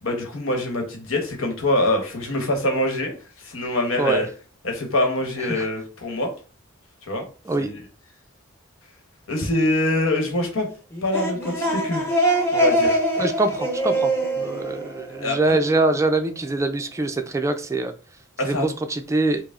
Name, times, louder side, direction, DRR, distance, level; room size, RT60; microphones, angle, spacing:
voice 1, 0.0-4.3 4.6-6.3 7.1-7.2 7.6-7.8 9.3-10.7 11.0-12.1 12.5-13.0 15.2-15.6 18.4-18.7, left 1 dB, 85° left, 3 dB, 1.1 m, -24 dB
sound 1, 10.9-15.6, right 1 dB, 10° left, 0.9 m, -23 dB
voice 2, 13.2-14.1 14.4-17.9 18.4-19.4, right 2 dB, 15° right, 7 dB, 0.3 m, -23 dB
4.8 x 2.0 x 3.6 m, 0.36 s
head